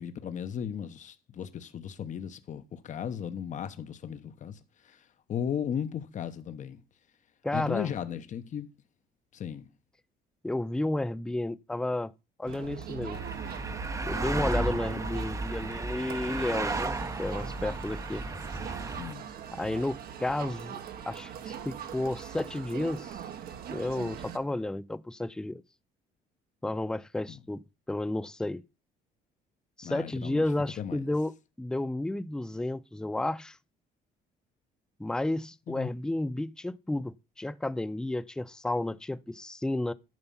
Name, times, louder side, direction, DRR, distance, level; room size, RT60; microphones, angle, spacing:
voice 1, 0.0-6.8 7.5-8.7 9.3-9.7 19.0-19.2 27.3-27.4 29.8-30.4 30.8-31.1 35.7-35.9, left 8 dB, 45° left, 1.1 m, -36 dB
voice 2, 7.4-7.9 10.4-12.1 12.4-13.2 14.1-16.9 17.2-18.2 19.5-20.8 21.1-23.2 23.7-25.6 26.6-27.6 27.9-28.6 29.8-31.3 31.6-33.6 35.0-39.9, left 1 dB, 5° left, 0.4 m, -32 dB
Crowd, 12.5-24.4, right 8 dB, 65° right, 1.3 m, -41 dB
sound 1, 13.1-19.1, right 2 dB, 20° right, 0.8 m, -34 dB
11.0 x 5.6 x 5.5 m
cardioid pair, 110°, 17 cm